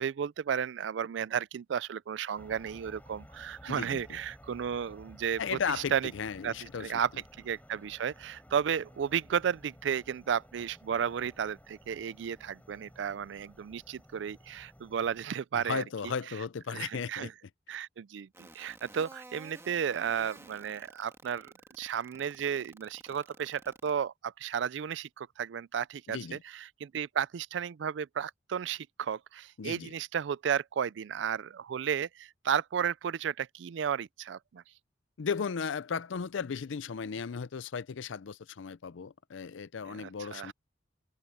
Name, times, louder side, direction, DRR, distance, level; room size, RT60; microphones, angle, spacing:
voice 1, 0.0-5.6 5.9-6.1 6.4-7.1 7.4-15.8 16.7-17.3 17.7-34.6 39.9-40.5, right 8 dB, 70° right, 0.4 m, -33 dB
sound 1, 2.4-15.3, equal, 10° left, 4.3 m, -55 dB
voice 2, 3.7-4.2 5.4-6.9 15.5-17.3 26.1-26.4 29.6-29.9 35.2-40.5, left 6 dB, 80° left, 0.5 m, -35 dB
sound 2, 18.3-23.9, right 2 dB, 15° right, 2.0 m, -52 dB
open air
head